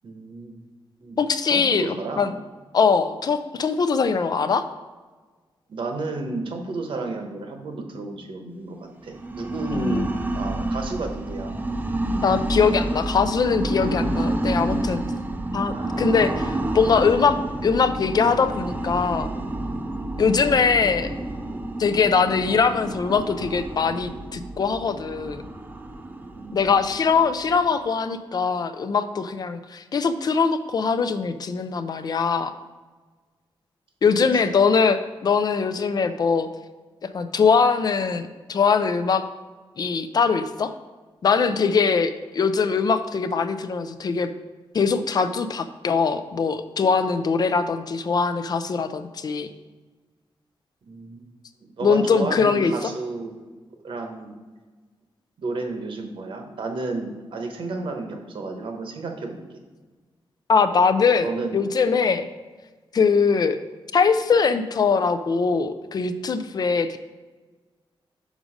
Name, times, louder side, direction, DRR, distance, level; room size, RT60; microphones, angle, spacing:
voice 1, 0.0-0.5 1.0-1.2 1.5-2.3 5.7-11.5 15.7-16.1 26.3-26.8 34.3-34.6 50.9-51.3 51.6-53.5 53.8-54.3 55.4-59.6 61.2-62.1, right 3 dB, 65° right, 4 dB, 1.0 m, -32 dB
voice 2, 1.2-2.3 2.7-4.7 9.7-10.1 12.1-15.0 15.5-17.4 17.6-19.3 20.2-21.1 21.8-25.4 26.5-32.5 34.0-36.5 37.0-39.2 39.8-40.7 41.2-44.3 44.7-49.5 51.8-52.7 60.5-62.3 62.9-63.6 63.9-67.0, left 5 dB, 45° left, 10 dB, 0.4 m, -22 dB
sound 1, 9.1-27.8, right 1 dB, 20° right, 0.5 m, -29 dB
6.1 x 5.2 x 4.9 m, 1.3 s
wide cardioid pair, 160°, 9 cm